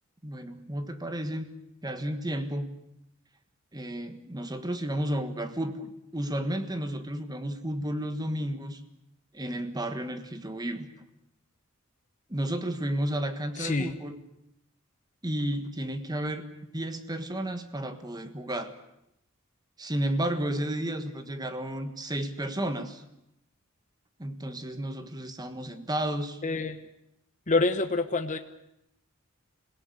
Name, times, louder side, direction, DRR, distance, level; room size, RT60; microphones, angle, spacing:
voice 1, 0.2-1.5 1.8-2.7 3.7-8.8 9.3-10.9 12.3-14.2 15.2-16.4 16.7-18.7 19.8-23.0 24.2-26.4, right 1 dB, 20° right, 9 dB, 1.4 m, -32 dB
voice 2, 13.6-14.0 26.4-26.8 27.5-28.4, left 3 dB, 40° left, 7 dB, 1.1 m, -26 dB
27.0 x 17.5 x 8.3 m, 0.83 s
head